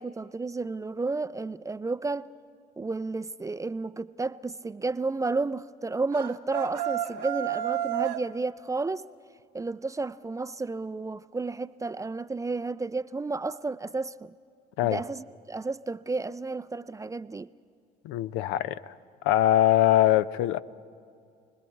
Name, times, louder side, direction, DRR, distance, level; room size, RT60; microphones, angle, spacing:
voice 1, 0.0-2.3 2.8-9.1 9.5-14.3 14.8-17.5, right 3 dB, 15° right, 0.4 m, -32 dB
sound 1, 6.1-8.3, right 12 dB, 85° right, 0.8 m, -30 dB
voice 2, 18.0-18.9 19.2-20.6, left 13 dB, 65° left, 0.6 m, -22 dB
29.0 x 20.0 x 4.6 m
hypercardioid pair, 60°, 21 cm